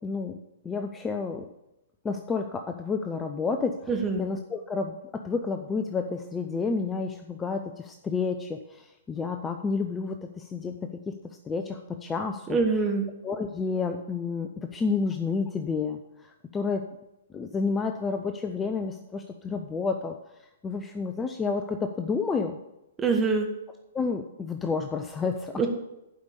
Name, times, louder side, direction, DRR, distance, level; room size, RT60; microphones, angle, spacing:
voice 1, 0.0-0.4 0.6-1.5 2.0-3.9 4.2-12.6 13.2-16.8 17.3-20.2 20.6-22.6 23.9-25.6, left 4 dB, 15° left, 6 dB, 0.6 m, -30 dB
voice 2, 3.9-4.2 12.5-13.1 23.0-23.5 25.6-25.7, right 4 dB, 15° right, 3 dB, 1.5 m, -24 dB
11.5 x 5.3 x 6.8 m, 0.91 s
figure-of-eight pair, 120°, 0 cm